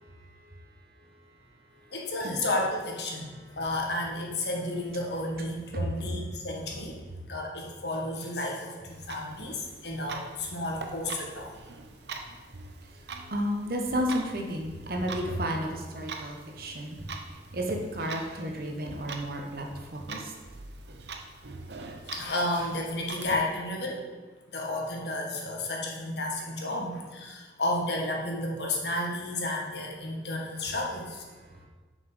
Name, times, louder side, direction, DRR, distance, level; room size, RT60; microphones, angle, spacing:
voice 1, 1.9-7.0 7.3-11.5 22.1-24.0 24.5-31.2, left 1 dB, 75° left, -1 dB, 1.6 m, -32 dB
Clock, 8.9-23.3, right 4 dB, 75° right, 0.8 m, -44 dB
voice 2, 13.3-17.0 17.5-20.3, equal, 55° right, 1 dB, 1.2 m, -32 dB
6.5 x 5.6 x 5.6 m, 1.3 s
head